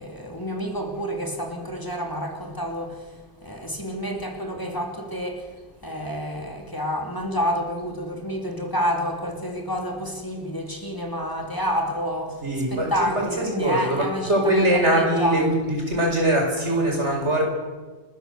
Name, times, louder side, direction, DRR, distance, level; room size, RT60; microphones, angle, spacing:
voice 1, 0.0-3.0 3.4-5.5 5.8-12.4 12.7-15.4, equal, 20° left, 2 dB, 2.8 m, -28 dB
voice 2, 12.4-17.4, right 1 dB, 85° right, 1 dB, 5.4 m, -22 dB
29.5 x 13.5 x 6.8 m, 1.3 s
omnidirectional pair, 1.2 m